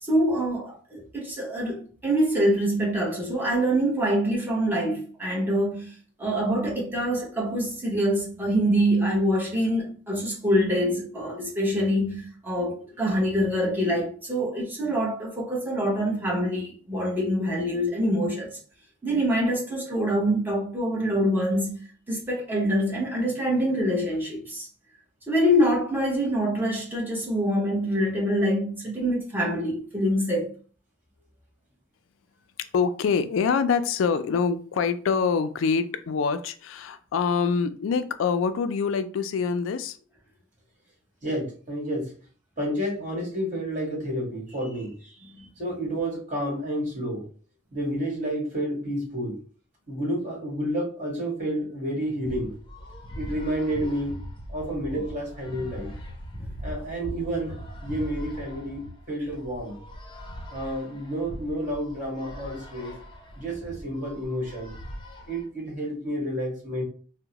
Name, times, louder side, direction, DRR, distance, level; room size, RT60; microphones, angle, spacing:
voice 1, 0.0-5.9 6.2-18.6 19.0-21.8 22.1-24.7 25.3-30.5 45.2-45.5, equal, 10° right, 1.0 m, -25 dB
voice 2, 32.7-40.0, left 5 dB, 80° left, 0.3 m, -25 dB
voice 3, 41.2-42.1 42.6-45.1 45.6-47.2 47.7-49.4 49.9-52.5 53.1-54.2 54.5-55.9 56.6-59.8 60.5-62.9 63.4-64.7 65.3-66.8, equal, 40° right, 1.6 m, -30 dB
sound 1, 52.2-65.4, equal, 25° left, 0.6 m, -40 dB
3.5 x 2.1 x 2.9 m
head